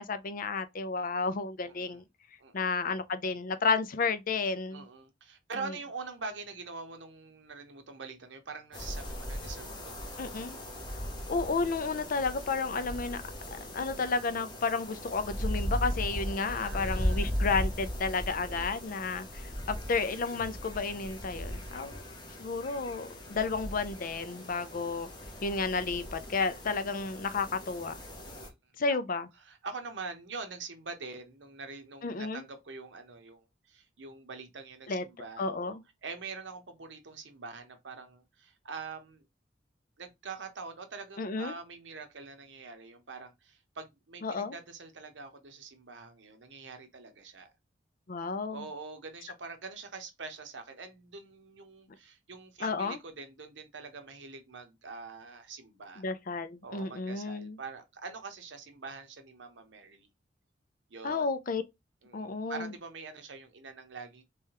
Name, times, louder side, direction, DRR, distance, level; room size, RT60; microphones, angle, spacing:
voice 1, 0.0-2.0 2.5-4.8 10.2-10.6 11.3-13.2 13.5-22.0 22.4-25.1 25.4-27.9 28.8-29.3 32.0-32.4 34.9-35.0 35.4-35.8 41.2-41.5 44.2-44.5 48.1-48.7 52.6-53.0 56.0-57.6 61.0-61.6 62.1-62.7, left 4 dB, 50° left, 0.5 m, -32 dB
voice 2, 1.6-2.0 2.4-2.7 4.7-10.1 16.4-17.4 18.5-18.7 28.3-28.7 29.4-39.2 40.0-47.5 48.5-56.0 56.6-60.1 60.9-61.3 62.0-64.2, right 4 dB, 75° right, 0.9 m, -44 dB
sound 1, 8.7-28.5, equal, 25° left, 1.1 m, -38 dB
3.4 x 3.3 x 2.9 m
head